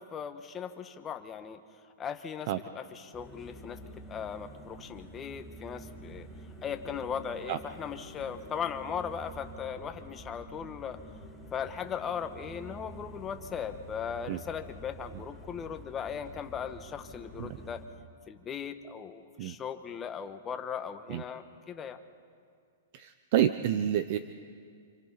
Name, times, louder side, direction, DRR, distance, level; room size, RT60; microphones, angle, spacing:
voice 1, 0.1-1.6 2.0-3.8 4.1-6.3 6.6-11.0 11.5-17.8 18.3-22.0, left 7 dB, 20° left, 6 dB, 1.3 m, -38 dB
sound 1, 3.1-17.9, equal, ahead, 5.4 m, -48 dB
voice 2, 22.9-24.2, right 11 dB, 50° right, 11 dB, 0.8 m, -28 dB
29.5 x 27.0 x 4.1 m, 2.2 s
hypercardioid pair, 140°, 0 cm